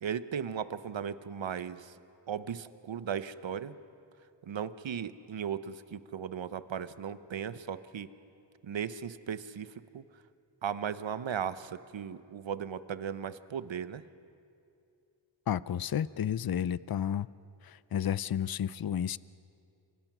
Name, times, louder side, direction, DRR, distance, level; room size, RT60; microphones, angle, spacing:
voice 1, 0.0-1.9 2.3-3.7 4.4-8.1 8.6-10.0 10.6-14.0, right 8 dB, 75° right, 14 dB, 0.9 m, -37 dB
voice 2, 15.5-17.3 17.6-19.2, left 9 dB, 55° left, 19 dB, 0.6 m, -31 dB
29.0 x 24.0 x 6.1 m, 2.5 s
wide cardioid pair, 70°, 45 cm